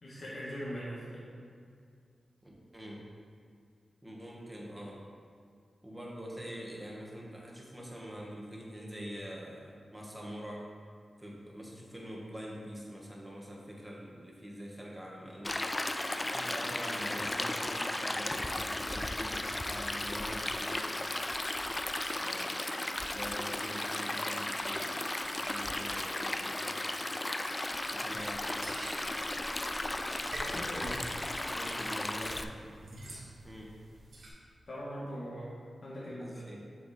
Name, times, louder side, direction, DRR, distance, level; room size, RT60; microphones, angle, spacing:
voice 1, 0.0-1.2 30.4-31.2 34.7-35.5 35.8-36.5, equal, 60° left, -8 dB, 1.5 m, -41 dB
voice 2, 2.7-3.1 4.0-5.0 5.8-10.7 11.2-15.7 16.3-21.1 22.2-22.6 22.8-25.1 25.4-26.8 27.8-28.4 31.4-32.7 33.4-33.7 36.2-36.6, equal, 15° right, -3 dB, 1.3 m, -45 dB
Stream, 15.4-32.4, left 1 dB, 20° left, 0.3 m, -35 dB
sound 1, 28.1-34.3, right 1 dB, 80° right, 1.4 m, -48 dB
8.1 x 3.4 x 4.2 m, 2.3 s
wide cardioid pair, 90°, 0 cm